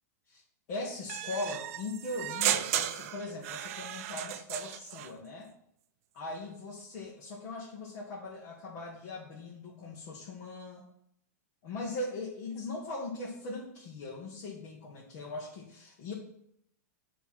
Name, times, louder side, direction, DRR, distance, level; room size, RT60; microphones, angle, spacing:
voice 1, 0.7-5.5 6.1-10.9 11.6-16.1, left 2 dB, 50° left, -4 dB, 1.4 m, -40 dB
sound 1, 1.1-5.1, right 11 dB, 55° right, 0.5 m, -34 dB
6.9 x 3.1 x 5.5 m, 0.73 s
hypercardioid pair, 140°, 9 cm